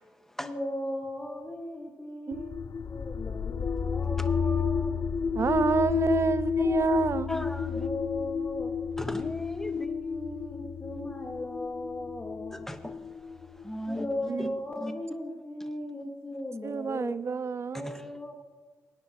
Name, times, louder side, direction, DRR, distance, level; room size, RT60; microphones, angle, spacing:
voice 1, 0.4-2.5 2.8-5.0 6.6-7.0 7.7-8.8 9.7-12.7 13.9-17.2 17.7-18.3, left 1 dB, 25° left, 1.6 m, -37 dB
sound 1, 2.3-14.1, left 6 dB, 60° left, 0.6 m, -31 dB
voice 2, 5.3-7.3 14.3-14.5 16.6-17.9, right 6 dB, 45° right, 0.5 m, -28 dB
voice 3, 7.3-7.9 9.0-9.9 12.5-14.5 14.8-14.9 17.7-18.1, left 1 dB, 5° left, 1.1 m, -38 dB
18.5 x 10.0 x 2.9 m
cardioid pair, 65°, 6 cm